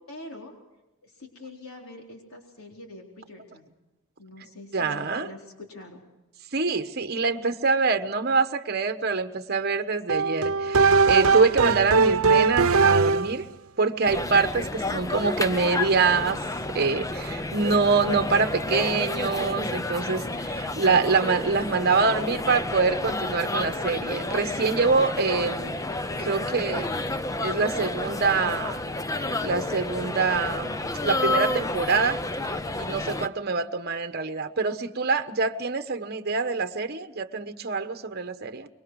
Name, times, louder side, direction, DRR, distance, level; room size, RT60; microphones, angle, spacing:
voice 1, 0.1-0.5 1.0-3.7 4.2-6.0, left 2 dB, 85° left, 1 dB, 4.1 m, -44 dB
voice 2, 4.7-5.3 6.5-13.4 13.8-16.4 16.7-25.8 26.2-26.9 27.4-28.9 29.4-32.2 32.7-38.7, right 4 dB, 50° right, 9 dB, 1.2 m, -25 dB
sound 1, 10.1-13.4, right 4 dB, 85° right, 0.8 m, -20 dB
sound 2, 14.0-33.3, left 2 dB, 15° left, 0.6 m, -30 dB
25.5 x 23.5 x 4.8 m, 1.0 s
head